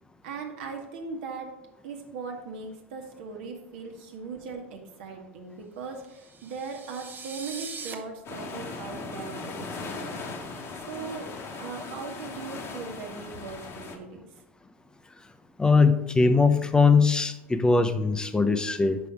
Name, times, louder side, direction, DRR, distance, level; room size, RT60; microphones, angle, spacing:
voice 1, 0.2-1.5 1.8-10.5 10.9-14.3, right 4 dB, 65° right, 2 dB, 1.2 m, -39 dB
sound 1, 6.1-7.9, right 5 dB, 30° right, 0.8 m, -41 dB
sound 2, 8.2-14.0, left 3 dB, 40° left, 1.0 m, -38 dB
voice 2, 15.6-19.0, left 4 dB, 10° left, 9 dB, 0.6 m, -21 dB
5.3 x 4.7 x 4.9 m, 0.92 s
hypercardioid pair, 90°, 7 cm